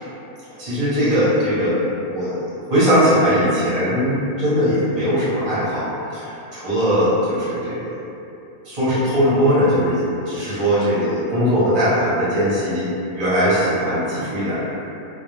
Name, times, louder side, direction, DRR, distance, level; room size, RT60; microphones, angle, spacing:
voice 1, 0.6-2.4 2.7-7.9 8.6-10.0 10.3-14.6, equal, 45° right, -11 dB, 0.6 m, -20 dB
2.2 x 2.1 x 3.0 m, 2.9 s
omnidirectional pair, 1.4 m